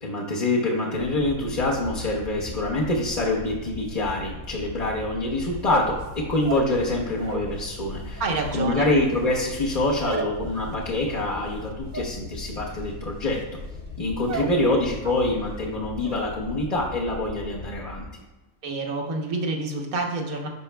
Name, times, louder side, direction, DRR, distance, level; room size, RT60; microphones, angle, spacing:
voice 1, 0.0-8.2 8.5-13.4 14.0-18.1, left 2 dB, 35° left, -5 dB, 0.8 m, -25 dB
sound 1, 0.9-18.1, left 3 dB, 60° left, 0.6 m, -39 dB
sound 2, 5.5-7.6 7.9-14.6 14.9-15.4 15.7-16.2, right 4 dB, 50° right, 0.5 m, -35 dB
voice 2, 8.2-8.9 14.7-14.8 18.6-20.5, right 2 dB, 80° right, 0 dB, 1.5 m, -28 dB
11.0 x 5.2 x 2.2 m, 1.1 s
omnidirectional pair, 1.5 m